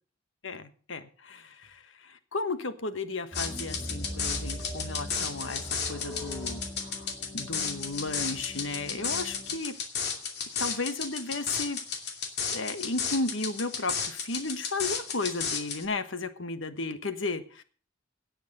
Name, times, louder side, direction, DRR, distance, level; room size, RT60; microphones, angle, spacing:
voice 1, 0.4-9.7 10.6-11.8 12.5-17.6, left 3 dB, 75° left, 10 dB, 1.4 m, -34 dB
sound 1, 3.3-15.8, left 6 dB, 60° left, 2.6 m, -33 dB
sound 2, 3.3-9.6, equal, 15° left, 5.8 m, -40 dB
17.5 x 6.7 x 6.6 m, 0.42 s
head